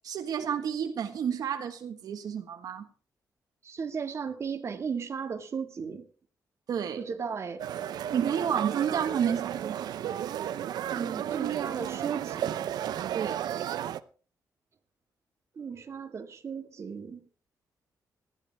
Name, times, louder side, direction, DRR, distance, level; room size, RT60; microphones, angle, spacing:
voice 1, 0.0-2.9 6.7-7.0 8.1-9.8 13.1-13.4, right 8 dB, 70° right, 6 dB, 1.5 m, -30 dB
voice 2, 3.6-6.1 7.0-7.6 10.9-12.7 15.6-17.2, right 6 dB, 45° right, 6 dB, 1.9 m, -36 dB
sound 1, 7.6-14.0, right 10 dB, 90° right, 0.7 m, -33 dB
19.5 x 14.0 x 3.5 m, 0.40 s
cardioid pair, 130°, 7 cm